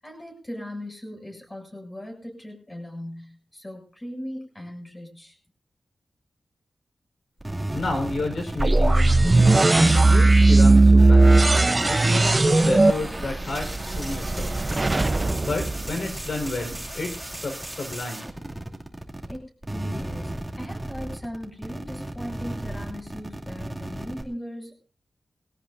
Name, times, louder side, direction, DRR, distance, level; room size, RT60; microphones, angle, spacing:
voice 1, 0.0-5.4 19.3-24.8, equal, 20° left, 2 dB, 7.3 m, -38 dB
sound 1, 7.4-19.4 19.6-24.2, right 1 dB, 10° right, 2.6 m, -35 dB
voice 2, 7.7-9.4 9.7-11.3 11.9-14.5 15.4-18.3, left 2 dB, 70° left, 4 dB, 4.7 m, -31 dB
sound 2, 8.6-16.5, right 2 dB, 30° right, 0.8 m, -18 dB
21.0 x 17.5 x 2.7 m, 0.35 s
wide cardioid pair, 75°, 0 cm